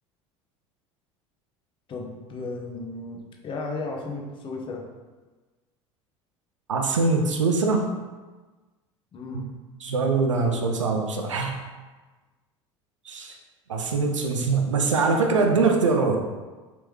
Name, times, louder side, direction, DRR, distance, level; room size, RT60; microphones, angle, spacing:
voice 1, 1.9-4.8 9.1-9.5, left 3 dB, 35° left, 1 dB, 0.8 m, -34 dB
voice 2, 6.7-7.9 9.3-9.4 9.8-11.6 13.1-13.3 13.7-16.2, right 4 dB, 80° right, 3 dB, 0.5 m, -23 dB
4.4 x 3.5 x 3.1 m, 1.3 s
figure-of-eight pair, 70°, 16 cm